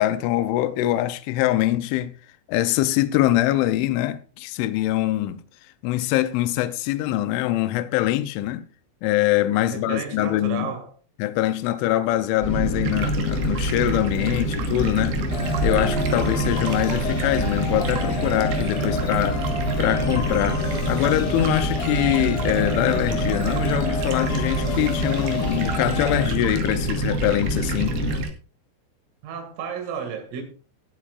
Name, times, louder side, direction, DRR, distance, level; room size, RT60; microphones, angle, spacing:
voice 1, 0.0-2.1 2.5-5.4 5.8-8.6 9.0-10.7 11.2-15.2 15.6-19.4 19.8-28.0, left 14 dB, 80° left, 3.0 m, -23 dB
voice 2, 9.7-10.9 29.2-30.4, right 6 dB, 85° right, 4.9 m, -32 dB
sound 1, 12.4-28.2, equal, 20° left, 4.4 m, -26 dB
Stream, 12.8-28.3, right 5 dB, 65° right, 2.7 m, -35 dB
sound 2, 15.3-26.3, left 1 dB, 65° left, 5.7 m, -31 dB
19.5 x 8.3 x 2.5 m
omnidirectional pair, 5.8 m